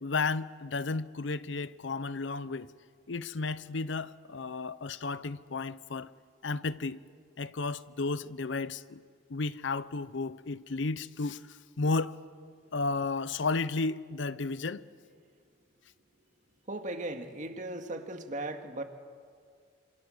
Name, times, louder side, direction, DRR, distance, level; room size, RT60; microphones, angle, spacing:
voice 1, 0.0-2.7 3.1-6.1 6.4-7.0 7.4-9.0 9.3-12.2 12.7-14.9, left 3 dB, 70° left, 0.7 m, -33 dB
voice 2, 16.7-18.8, right 1 dB, 40° right, 2.0 m, -37 dB
27.0 x 27.0 x 7.8 m
head